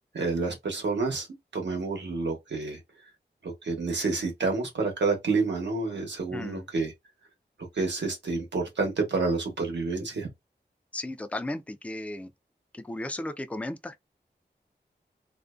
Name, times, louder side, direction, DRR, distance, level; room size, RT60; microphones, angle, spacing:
voice 1, 0.1-1.3 1.5-2.8 3.4-6.9 7.7-10.3, right 3 dB, 90° right, 0.9 m, -29 dB
voice 2, 6.3-6.7 10.9-12.3 12.7-14.0, left 1 dB, 5° left, 0.3 m, -35 dB
2.5 x 2.1 x 2.3 m
wide cardioid pair, 70°, 18 cm